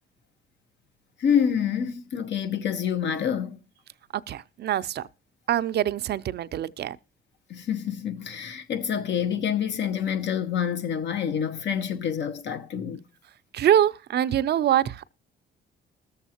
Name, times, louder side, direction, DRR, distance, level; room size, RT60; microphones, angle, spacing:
voice 1, 1.2-3.6 7.5-13.0, left 8 dB, 65° left, 1.0 m, -27 dB
voice 2, 4.3-5.0 5.5-7.0 13.5-15.1, right 11 dB, 55° right, 0.4 m, -24 dB
20.5 x 7.1 x 2.9 m
cardioid pair, 90°, 20 cm